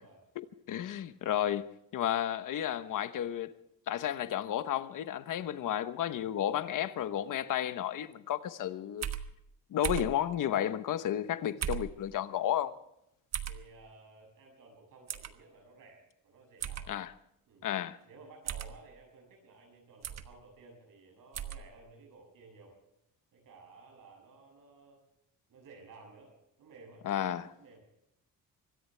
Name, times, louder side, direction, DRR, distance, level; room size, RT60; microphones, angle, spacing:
voice 1, 0.4-1.7 1.9-3.5 3.9-9.1 9.7-12.7 16.9-17.1 17.6-18.0 27.0-27.8, left 11 dB, 60° left, 1.0 m, -32 dB
sound 1, 9.0-9.3 9.8-10.1 11.6-11.9 13.3-13.6 15.1-15.3 16.6-16.9 18.5-18.7 20.0-20.3 21.3-21.6, right 9 dB, 45° right, 1.3 m, -35 dB
voice 2, 13.4-16.9 17.5-17.7 18.0-22.8 23.3-25.0 25.5-26.3 26.6-27.1 27.6-27.8, right 3 dB, 65° right, 7.6 m, -55 dB
24.5 x 17.5 x 3.4 m
cardioid pair, 175°, 35 cm